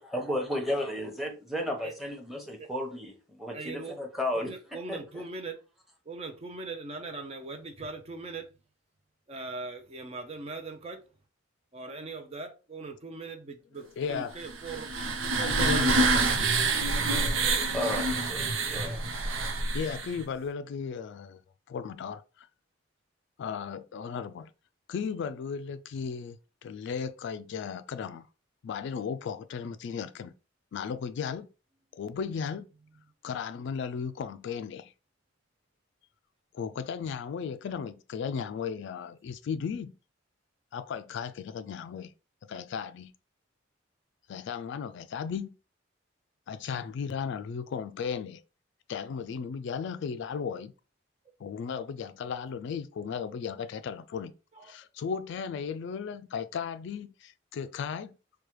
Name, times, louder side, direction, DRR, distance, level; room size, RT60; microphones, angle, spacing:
voice 1, 0.0-5.2 16.6-16.8 17.7-19.3, left 1 dB, ahead, 0.9 m, -34 dB
voice 2, 3.5-4.0 4.3-5.6 6.1-8.5 9.3-11.0 11.7-14.9 15.3-16.2 18.7-19.0 54.5-54.7, right 3 dB, 35° right, 0.5 m, -40 dB
voice 3, 14.0-14.4 15.4-16.6 19.4-21.4 21.7-22.5 23.4-24.5 24.9-26.4 26.6-28.3 28.6-30.3 30.7-31.5 31.9-32.7 33.2-34.9 36.5-39.9 40.7-42.1 42.5-43.1 44.3-45.5 46.5-48.4 48.9-50.7 51.4-54.3 54.6-58.2, left 6 dB, 65° left, 0.3 m, -35 dB
sound 1, 14.4-20.2, right 3 dB, 90° right, 0.6 m, -27 dB
4.6 x 2.2 x 3.1 m
head